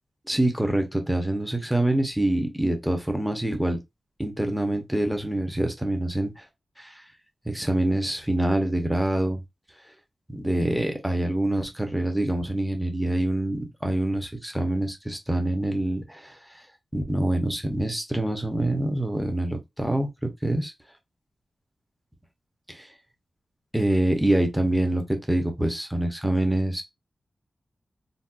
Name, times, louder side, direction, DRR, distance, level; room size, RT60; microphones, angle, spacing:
voice 1, 0.3-3.8 4.2-6.4 6.8-7.0 7.5-9.4 10.3-16.4 16.9-20.7 22.7-22.9 23.7-26.8, right 1 dB, 5° right, 0.6 m, -25 dB
4.0 x 2.2 x 2.3 m
wide cardioid pair, 145°, 0 cm